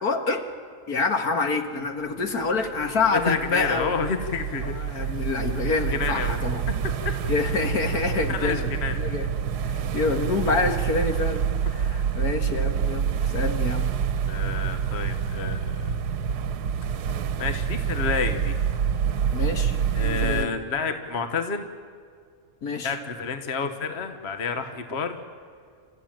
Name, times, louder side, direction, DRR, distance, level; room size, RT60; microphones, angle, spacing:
voice 1, 0.0-0.5 0.9-3.9 4.7-6.6 7.3-8.7 9.0-9.3 9.7-13.9 19.3-20.5 22.6-23.0, left 3 dB, 70° left, 5 dB, 2.1 m, -27 dB
sound 1, 2.4-20.4, right 7 dB, 80° right, 1.4 m, -27 dB
voice 2, 3.1-5.2 5.9-6.4 7.0-7.1 8.3-9.1 14.3-15.9 17.4-18.6 19.9-21.7 22.8-25.2, left 5 dB, 45° left, 7 dB, 1.5 m, -29 dB
28.5 x 14.5 x 8.9 m, 2.1 s
omnidirectional pair, 1.7 m